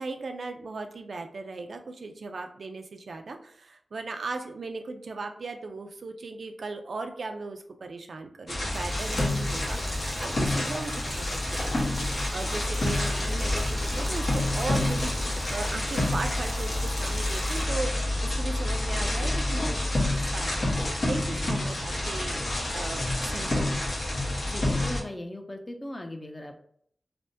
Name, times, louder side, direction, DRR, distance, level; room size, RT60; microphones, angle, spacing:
voice 1, 0.0-11.9 12.3-24.0, right 3 dB, 80° right, 5 dB, 0.3 m, -37 dB
sound 1, 8.5-25.0, left 1 dB, 65° left, 1.0 m, -28 dB
sound 2, 8.6-17.6, right 1 dB, 25° right, 0.5 m, -43 dB
voice 2, 24.4-26.5, left 1 dB, 30° left, 4 dB, 0.5 m, -38 dB
3.3 x 2.1 x 2.6 m, 0.64 s
cardioid pair, 45°, 0 cm